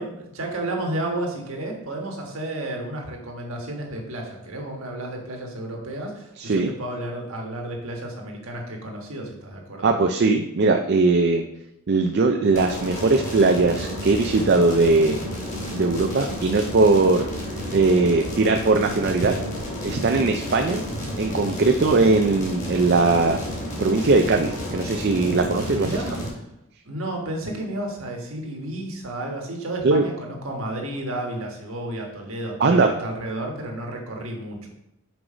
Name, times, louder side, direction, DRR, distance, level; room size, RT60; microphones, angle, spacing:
voice 1, 0.0-9.9 20.1-20.3 25.7-26.1 26.8-34.7, right 1 dB, 65° right, 1 dB, 1.5 m, -32 dB
voice 2, 6.4-6.7 9.8-11.4 11.9-15.2 15.7-17.3 17.7-19.4 19.8-20.8 21.2-23.4 23.8-26.0 29.8-30.1 32.6-32.9, right 3 dB, 45° right, 4 dB, 0.4 m, -20 dB
sound 1, 12.5-26.3, equal, 35° left, 2.4 m, -31 dB
6.1 x 4.7 x 4.9 m, 0.83 s
head